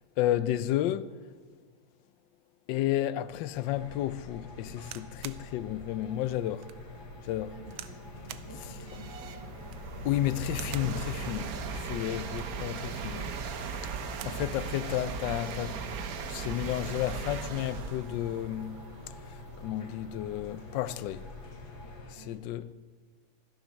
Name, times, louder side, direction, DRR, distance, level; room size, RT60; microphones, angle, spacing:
voice 1, 0.2-1.1 2.7-6.7 7.3-7.6 10.0-13.3 14.2-15.8 16.3-18.8 19.6-21.3 22.1-22.7, left 13 dB, 75° left, 1.1 m, -32 dB
sound 1, 3.5-22.1, left 2 dB, 50° left, 2.2 m, -45 dB
sound 2, 4.9-5.5 6.0-6.1 6.6-6.8 7.7-8.0 8.3-8.5 9.6-9.9 10.5-11.0 12.2-12.6 13.7-14.4 14.9-15.0 15.2-15.7 16.5-16.8, right 12 dB, 80° right, 1.5 m, -46 dB
sound 3, 6.5-6.6 7.2-21.9, right 6 dB, 55° right, 1.1 m, -39 dB
voice 2, 7.5-9.6 22.1-22.5, right 5 dB, 35° right, 1.5 m, -52 dB
16.0 x 13.0 x 6.3 m
omnidirectional pair, 2.3 m